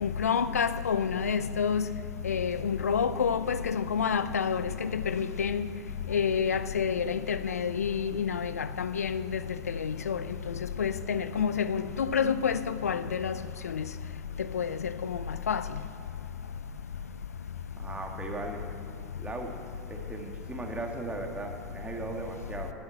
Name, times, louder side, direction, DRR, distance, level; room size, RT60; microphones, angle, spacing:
voice 1, 0.0-1.8 2.2-5.6 6.1-9.2 9.8-10.2 10.8-13.3 13.8-13.9 14.5-14.7 15.5-15.6, left 7 dB, 85° left, 0.5 m, -28 dB
voice 2, 17.8-18.6 19.2-19.5 19.9-22.7, right 2 dB, 15° right, 2.0 m, -37 dB
10.5 x 9.4 x 7.8 m
hypercardioid pair, 85°, 8 cm